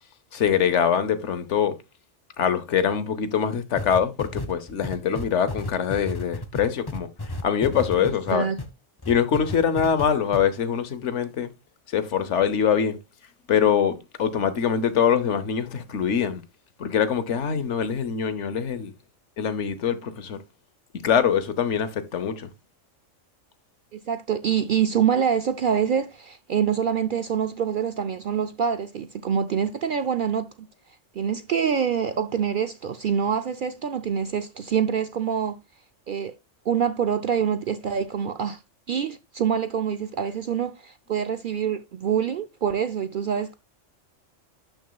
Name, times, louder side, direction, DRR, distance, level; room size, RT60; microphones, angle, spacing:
voice 1, 0.3-1.7 2.4-7.1 7.4-8.5 9.1-11.5 11.9-13.0 13.5-16.4 16.8-18.9 19.4-20.4 21.0-22.5, left 7 dB, 70° left, 1.2 m, -23 dB
sound 1, 3.8-8.7 9.0-10.1 10.3-10.4, left 2 dB, 20° left, 0.9 m, -32 dB
voice 2, 7.9-8.6 23.9-30.7 31.1-35.6 36.1-36.4 36.7-38.6 38.9-43.5, right 7 dB, 60° right, 0.5 m, -25 dB
12.0 x 6.2 x 2.3 m
omnidirectional pair, 1.3 m